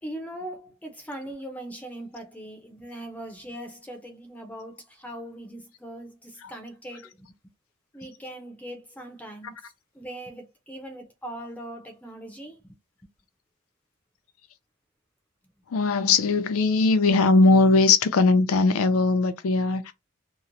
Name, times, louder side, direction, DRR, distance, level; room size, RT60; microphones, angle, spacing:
voice 1, 0.0-7.3 7.9-9.6 9.9-12.8, right 1 dB, 5° left, 0.5 m, -40 dB
voice 2, 15.7-19.9, left 3 dB, 85° left, 0.5 m, -20 dB
2.9 x 2.1 x 2.5 m
head